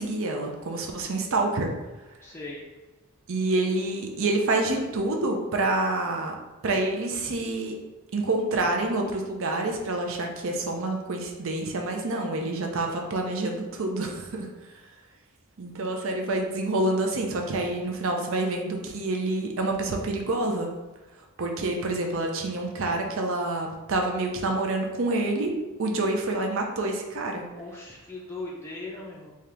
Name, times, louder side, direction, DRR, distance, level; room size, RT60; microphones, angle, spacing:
voice 1, 0.0-1.7 3.3-6.3 6.6-7.7 8.1-14.5 15.6-20.7 21.4-25.5 25.8-27.4, right 2 dB, 65° right, 2 dB, 0.6 m, -27 dB
voice 2, 2.2-2.6 27.6-29.3, left 2 dB, 10° left, -4 dB, 0.4 m, -38 dB
3.6 x 2.8 x 3.3 m, 1.1 s
head